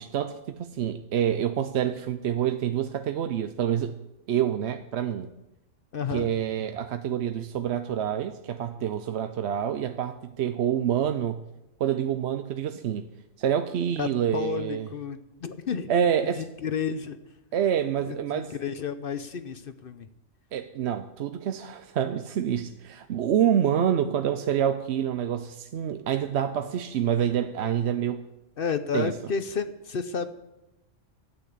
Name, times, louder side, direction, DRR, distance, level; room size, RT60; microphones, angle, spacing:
voice 1, 0.0-3.9 4.3-5.3 6.1-11.4 11.8-13.1 13.4-14.9 15.9-16.4 17.5-18.5 20.5-28.2 28.9-29.1, right 9 dB, 65° right, 0.9 m, -27 dB
voice 2, 5.9-6.3 14.0-15.9 16.3-17.2 18.0-20.1 28.6-30.3, left 6 dB, 50° left, 0.8 m, -31 dB
12.5 x 8.7 x 8.3 m
omnidirectional pair, 1.3 m